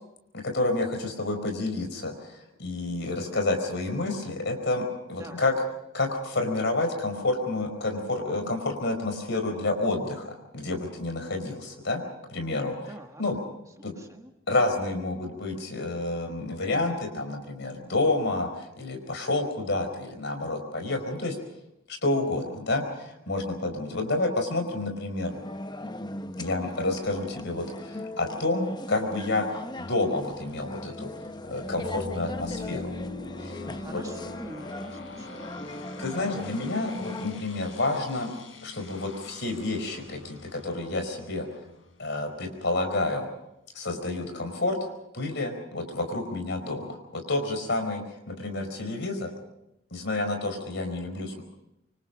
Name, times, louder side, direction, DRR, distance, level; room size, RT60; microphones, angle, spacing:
voice 1, 0.3-5.6 5.9-12.0 12.3-13.4 13.8-13.9 14.5-21.4 21.9-25.3 26.4-31.1 31.5-33.0 33.4-33.6 33.9-34.1 36.0-38.3 38.6-41.5 42.0-43.3 43.7-44.9 45.1-49.3 49.9-51.4, left 2 dB, 60° left, 5 dB, 4.8 m, -29 dB
voice 2, 12.9-13.2 13.8-14.3 33.7-35.5, right 1 dB, 15° right, 4 dB, 1.5 m, -45 dB
sound 1, 25.3-37.4, left 1 dB, 20° left, 0.8 m, -39 dB
sound 2, 30.4-43.0, left 3 dB, 80° left, 3.6 m, -43 dB
26.0 x 24.5 x 5.1 m, 0.85 s
head